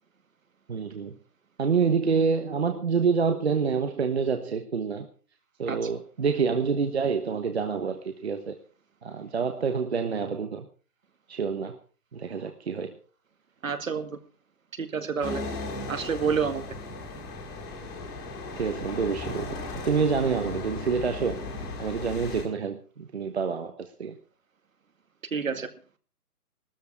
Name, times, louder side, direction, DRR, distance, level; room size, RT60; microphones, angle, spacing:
voice 1, 0.7-1.2 1.6-5.1 5.6-8.6 9.0-10.7 11.3-11.8 12.1-13.0 18.6-19.6 19.8-21.4 21.8-24.2, right 5 dB, 45° right, 7 dB, 1.3 m, -27 dB
voice 2, 13.6-14.2 14.8-15.4 15.9-16.6 25.3-25.7, right 6 dB, 60° right, 10 dB, 2.1 m, -28 dB
sound 1, 15.2-22.4, left 3 dB, 15° left, 2.2 m, -36 dB
15.5 x 13.5 x 4.7 m, 0.38 s
hypercardioid pair, 170°, 45 cm